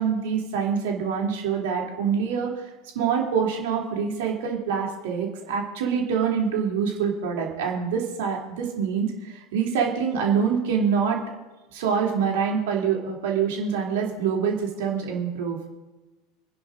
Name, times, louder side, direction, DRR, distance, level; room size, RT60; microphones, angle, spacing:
voice 1, 0.0-2.6 2.9-11.2 11.7-15.6, right 6 dB, 65° right, -1 dB, 2.8 m, -25 dB
28.0 x 10.5 x 2.6 m, 1.1 s
figure-of-eight pair, 75°, 0 cm